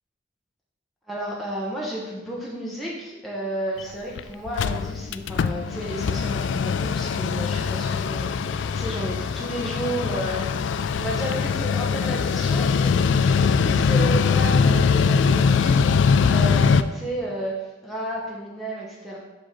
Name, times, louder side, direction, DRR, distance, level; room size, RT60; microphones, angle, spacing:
voice 1, 1.1-17.5 17.8-19.2, equal, ahead, -6 dB, 1.1 m, -32 dB
Mechanical fan, 3.8-3.9 4.2-4.3 4.5-16.8, left 5 dB, 70° left, 0.3 m, -22 dB
7.8 x 5.9 x 3.9 m, 1.1 s
head